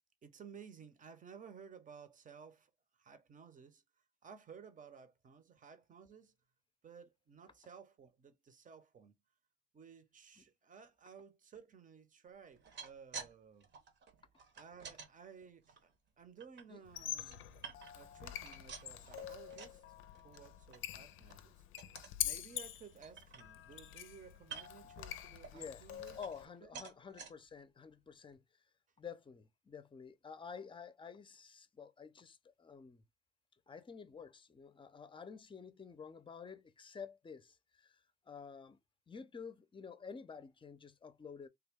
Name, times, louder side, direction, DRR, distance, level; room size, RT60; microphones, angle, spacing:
voice 1, 0.2-3.8 4.2-6.3 6.8-9.1 9.7-13.7 14.5-15.9 16.2-17.5 17.9-19.8 20.2-21.6 22.2-26.2 26.6-26.9, right 6 dB, 40° right, 0.8 m, -56 dB
sound 1, 12.5-13.3 13.6-15.1 15.6-16.6 17.1-18.1 18.4-19.8 20.1-20.4 20.7-20.8 21.2-21.4 21.8-22.2 22.6-22.7 23.0-23.8 24.4-24.9 25.4-26.5 26.7-27.3 27.9-28.0 28.3-28.4, right 6 dB, 65° right, 1.0 m, -51 dB
Squeak, 16.8-26.5, left 12 dB, 85° left, 0.5 m, -45 dB
voice 2, 25.5-25.9 26.2-28.4 29.0-33.0 33.7-38.0 38.3-38.8 39.1-41.5, left 6 dB, 25° left, 0.6 m, -50 dB
3.4 x 2.2 x 3.5 m
cardioid pair, 90°, 20 cm